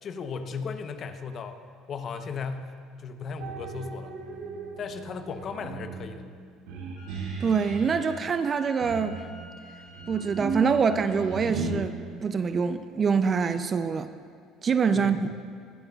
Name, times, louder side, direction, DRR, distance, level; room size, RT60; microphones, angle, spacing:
voice 1, 0.0-1.6 1.9-4.1 4.8-6.3 14.9-15.3, left 5 dB, 50° left, 0.8 m, -36 dB
sound 1, 3.4-8.1 8.8-11.7, right 4 dB, 85° right, 2.0 m, -36 dB
Wind instrument woodwind instrument, 7.0-11.0, left 2 dB, 90° left, 1.2 m, -50 dB
voice 2, 7.4-9.2 10.1-12.0 12.2-14.1 14.6-15.3, right 5 dB, 35° right, 0.4 m, -25 dB
22.5 x 7.7 x 2.4 m
supercardioid pair, 95°, 0 cm